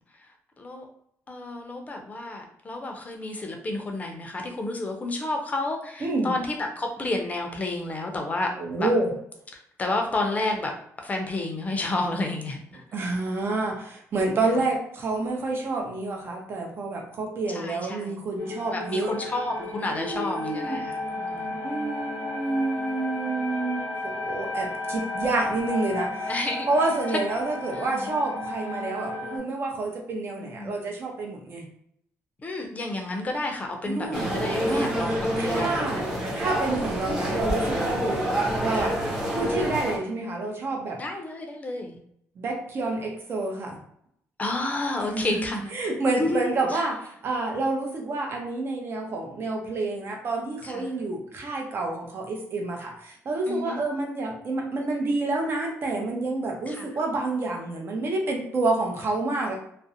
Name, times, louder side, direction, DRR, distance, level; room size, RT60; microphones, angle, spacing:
voice 1, 1.3-8.5 8.8-8.9 9.5-10.7 11.0-12.8 14.5-14.6 17.5-18.2 18.7-21.6 26.3-26.7 27.1-27.3 27.7-28.1 30.4-30.8 32.4-36.1 38.7-38.9 40.9-42.0 44.4-45.8 46.1-46.8 50.6-51.0 53.5-53.8 56.7-56.9, left 2 dB, 30° left, 2 dB, 0.5 m, -31 dB
voice 2, 6.0-6.3 8.6-9.1 12.9-19.1 20.0-20.8 21.6-26.3 26.7-31.7 33.9-34.3 34.7-34.9 35.4-36.0 36.3-38.3 38.6-38.9 39.3-41.0 42.4-43.8 45.1-45.5 45.7-59.6, right 2 dB, 45° right, 0 dB, 0.7 m, -28 dB
sound 1, 18.4-29.4, left 2 dB, 90° left, 0.8 m, -33 dB
sound 2, 34.1-40.0, equal, 10° right, 0.7 m, -27 dB
2.5 x 2.0 x 2.7 m, 0.70 s
cardioid pair, 105°, 5 cm